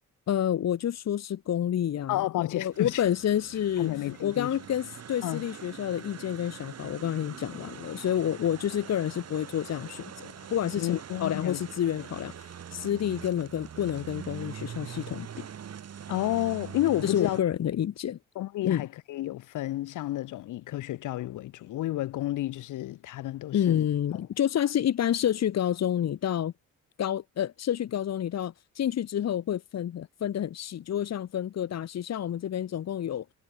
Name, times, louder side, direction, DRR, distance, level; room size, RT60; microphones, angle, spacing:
voice 1, 0.3-3.9 4.2-15.5 17.0-18.2 18.6-18.9 23.5-26.5 27.0-33.3, left 10 dB, 60° left, 1.8 m, -29 dB
voice 2, 2.1-3.0 3.8-4.5 5.2-5.4 10.8-11.6 16.1-17.4 18.3-23.8, left 15 dB, 85° left, 2.6 m, -31 dB
sound 1, 2.7-17.4, right 8 dB, 55° right, 6.5 m, -43 dB
cardioid pair, 90°, 30 cm